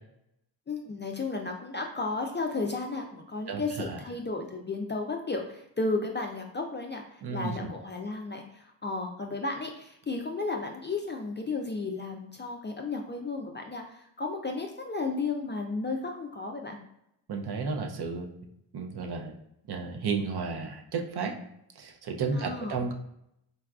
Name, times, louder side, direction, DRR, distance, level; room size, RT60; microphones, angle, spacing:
voice 1, 0.7-8.4 8.8-16.8 22.3-22.8, left 3 dB, 25° left, 2 dB, 0.3 m, -33 dB
voice 2, 3.5-4.0 7.2-7.7 17.3-18.3 18.7-19.4 19.7-21.4 21.8-22.9, right 4 dB, 55° right, 3 dB, 0.6 m, -33 dB
4.0 x 2.3 x 2.3 m, 0.79 s
cardioid pair, 50°, 47 cm